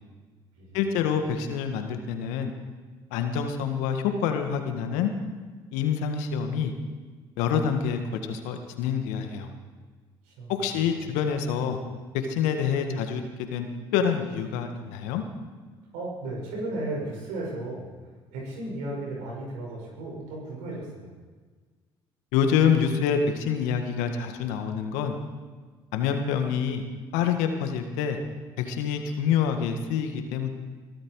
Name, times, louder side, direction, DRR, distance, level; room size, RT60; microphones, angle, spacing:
voice 1, 0.7-2.5 3.1-5.1 5.7-6.7 7.4-8.0 8.3-9.5 10.5-11.8 12.1-13.2 13.5-13.7 13.9-15.2 22.3-25.2 25.9-26.8 27.1-28.2 28.6-30.5, left 7 dB, 75° left, 6 dB, 1.7 m, -26 dB
voice 2, 15.9-17.9 18.3-21.1, right 2 dB, 75° right, -2 dB, 6.6 m, -34 dB
22.5 x 13.0 x 4.8 m, 1.4 s
hypercardioid pair, 55°, 13 cm